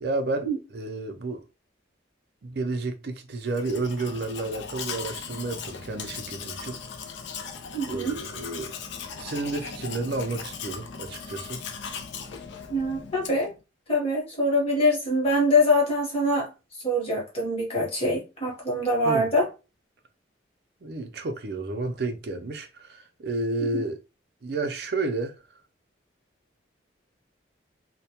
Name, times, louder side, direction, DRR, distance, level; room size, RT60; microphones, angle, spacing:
voice 1, 0.0-1.5 2.4-7.1 7.9-8.7 9.2-11.6 19.0-19.3 20.8-24.0 24.4-25.4, right 2 dB, 55° right, 0.4 m, -31 dB
Domestic sounds home sounds, 3.5-13.6, left 6 dB, 70° left, 0.4 m, -38 dB
voice 2, 7.7-8.2 12.7-13.5 13.9-19.5 23.6-23.8, left 1 dB, 30° left, 1.0 m, -24 dB
2.1 x 2.1 x 2.8 m
head